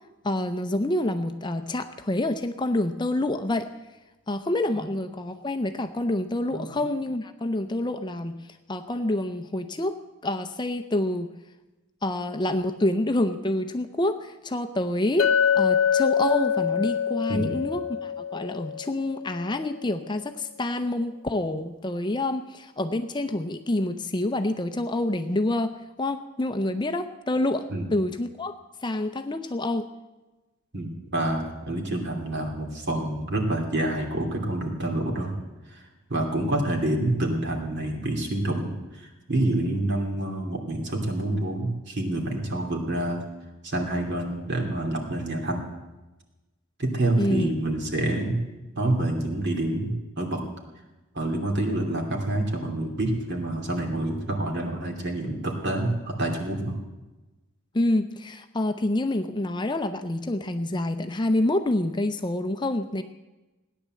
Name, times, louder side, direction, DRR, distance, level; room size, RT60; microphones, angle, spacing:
voice 1, 0.2-3.7 4.3-8.4 8.7-10.0 10.2-11.3 12.0-15.3 15.5-25.7 26.0-28.6 28.8-29.9 47.2-47.5 57.7-63.0, left 1 dB, 20° left, 8 dB, 0.6 m, -27 dB
Chink clink, 15.2-19.4, left 7 dB, 65° left, 0.8 m, -25 dB
voice 2, 30.7-35.3 35.7-35.8 36.1-43.2 43.6-45.6 46.8-48.4 48.8-50.4 51.1-56.8, right 1 dB, 50° right, 2 dB, 2.9 m, -27 dB
17.5 x 10.5 x 7.6 m, 1.1 s
head